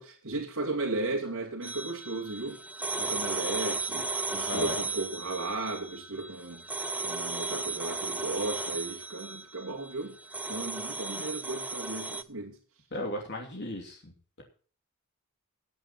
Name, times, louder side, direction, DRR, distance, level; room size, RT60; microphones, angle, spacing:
voice 1, 0.0-2.6 3.0-6.6 7.0-10.2 10.5-12.6, right 2 dB, 75° right, 2.7 m, -35 dB
sound 1, 1.6-12.2, right 3 dB, 5° right, 0.7 m, -35 dB
voice 2, 12.9-14.4, left 1 dB, 50° left, 2.9 m, -36 dB
16.5 x 9.0 x 4.4 m
head